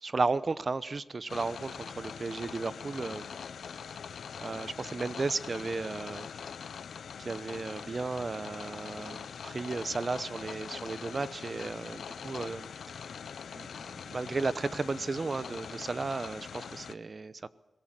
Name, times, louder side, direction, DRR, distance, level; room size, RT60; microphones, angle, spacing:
voice 1, 0.0-3.3 4.4-6.5 7.2-13.1 13.5-17.5, right 3 dB, 45° right, 0.8 m, -34 dB
sound 1, 1.3-16.9, left 6 dB, 80° left, 0.6 m, -43 dB
22.5 x 17.5 x 7.6 m
cardioid pair, 75°, 0 cm